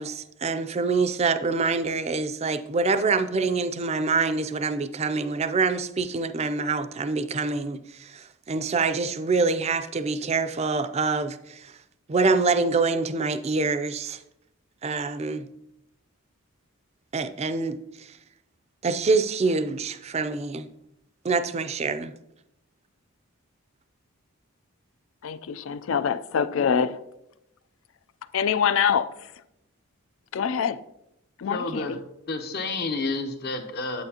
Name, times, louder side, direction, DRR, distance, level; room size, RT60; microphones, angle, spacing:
voice 1, 0.0-11.7 12.1-14.2 14.8-15.5 17.1-18.1 18.8-20.7 21.2-22.1, right 4 dB, 30° right, 0.4 m, -25 dB
voice 2, 25.2-27.0 28.3-29.1 30.3-30.8 31.4-32.0, left 7 dB, 70° left, 0.4 m, -25 dB
voice 3, 31.5-32.0 32.3-34.0, left 3 dB, 50° left, 0.9 m, -30 dB
9.1 x 8.7 x 2.8 m
head